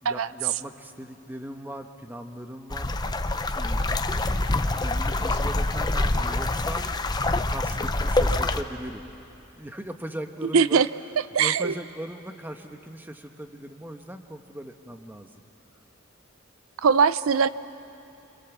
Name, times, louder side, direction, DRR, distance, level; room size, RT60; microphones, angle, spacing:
voice 1, 0.0-2.9 3.6-4.3 4.8-7.2 7.5-9.0 9.6-10.9 11.4-15.3, right 1 dB, 10° right, 6 dB, 1.1 m, -39 dB
sound 1, 2.7-8.6, left 2 dB, 20° left, 0.7 m, -25 dB
voice 2, 10.5-10.9 11.3-11.7 16.8-17.5, right 6 dB, 85° right, 16 dB, 0.5 m, -20 dB
29.0 x 26.5 x 7.3 m, 2.8 s
head